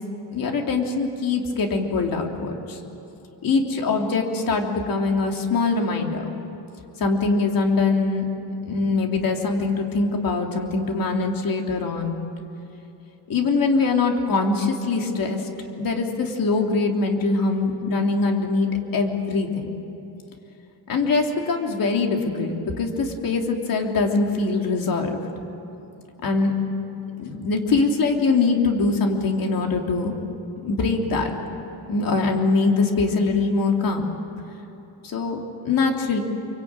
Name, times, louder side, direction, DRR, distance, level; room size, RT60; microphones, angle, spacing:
voice 1, 0.3-2.8 3.4-6.2 7.0-8.3 8.6-12.2 13.3-19.7 20.9-25.4 26.2-26.5 27.2-30.1 30.6-31.3 31.9-34.1 35.0-36.2, left 3 dB, 55° left, 2 dB, 3.2 m, -23 dB
27.5 x 24.5 x 9.0 m, 2.9 s
cardioid pair, 160°, 41 cm